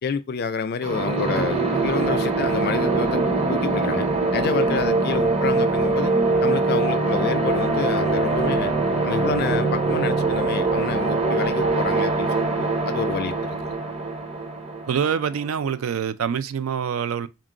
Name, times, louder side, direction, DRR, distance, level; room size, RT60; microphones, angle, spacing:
voice 1, 0.0-3.2 3.5-6.1 6.4-8.7 9.0-13.8, left 6 dB, 45° left, 0.3 m, -29 dB
sound 1, 0.8-15.5, right 3 dB, 30° right, 0.6 m, -23 dB
sound 2, 4.6-10.8, right 5 dB, 65° right, 0.8 m, -40 dB
voice 2, 14.9-17.3, right 7 dB, 80° right, 0.4 m, -25 dB
3.7 x 2.5 x 3.7 m
head